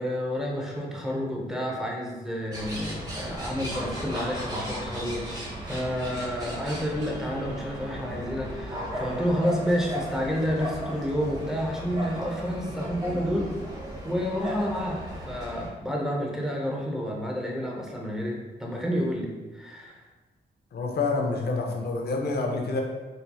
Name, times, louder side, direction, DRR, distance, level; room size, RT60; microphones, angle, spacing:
voice 1, 0.0-13.5 14.0-20.0, equal, 5° right, -2 dB, 0.8 m, -30 dB
sound 1, 2.5-15.7, equal, 20° right, 1.2 m, -36 dB
voice 2, 20.7-22.8, left 3 dB, 65° left, 2 dB, 0.6 m, -27 dB
4.3 x 2.7 x 2.3 m, 1.3 s
cardioid pair, 70°, 18 cm